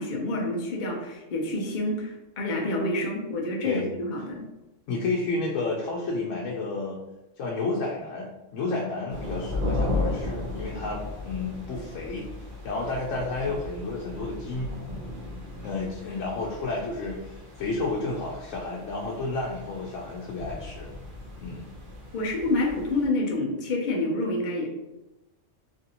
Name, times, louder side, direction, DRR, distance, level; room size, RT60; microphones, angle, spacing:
voice 1, 0.0-4.5 22.1-24.7, left 2 dB, 50° left, 0 dB, 0.6 m, -28 dB
voice 2, 4.9-7.0 7.4-12.3 12.6-14.7 15.6-20.9 21.4-21.7, left 3 dB, 90° left, -2 dB, 1.0 m, -31 dB
sound 1, 9.1-23.1, left 2 dB, 50° right, 0.8 m, -35 dB
3.1 x 2.5 x 2.8 m, 0.98 s
omnidirectional pair, 1.3 m